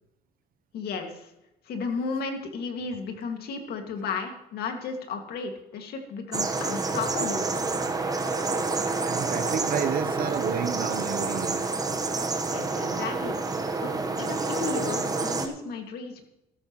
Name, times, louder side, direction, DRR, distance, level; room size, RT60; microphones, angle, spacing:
voice 1, 0.7-1.3 1.7-7.4 12.5-13.4 13.8-16.3, left 4 dB, 70° left, 4 dB, 2.1 m, -34 dB
sound 1, 6.3-15.5, right 3 dB, 20° right, 1.2 m, -28 dB
voice 2, 9.0-11.7, right 8 dB, 60° right, 11 dB, 0.8 m, -30 dB
13.5 x 13.5 x 3.1 m, 0.91 s
cardioid pair, 110°, 17 cm